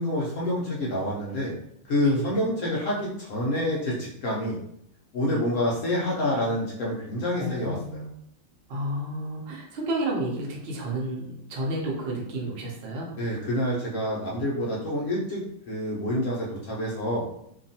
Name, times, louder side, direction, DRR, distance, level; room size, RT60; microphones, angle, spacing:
voice 1, 0.0-1.5 1.9-4.6 5.1-8.1 13.1-15.4 15.7-17.2, left 1 dB, 65° left, -5 dB, 0.8 m, -27 dB
voice 2, 2.0-2.4 5.2-5.4 7.3-8.1 8.7-13.1, right 1 dB, 70° right, -2 dB, 0.6 m, -31 dB
2.8 x 2.3 x 2.7 m, 0.74 s
omnidirectional pair, 1.9 m